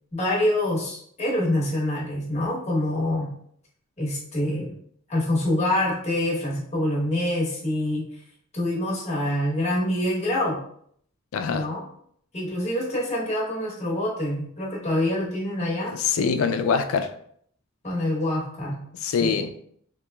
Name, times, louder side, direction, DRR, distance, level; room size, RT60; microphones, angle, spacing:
voice 1, 0.1-3.3 4.0-4.7 5.1-8.0 8.5-10.6 11.5-11.8 12.3-15.9 17.8-18.8 19.1-19.4, left 1 dB, 30° left, -5 dB, 1.0 m, -26 dB
voice 2, 11.3-11.7 15.9-17.1 18.9-19.5, left 6 dB, 70° left, 7 dB, 0.3 m, -24 dB
3.7 x 2.9 x 2.2 m, 0.65 s
head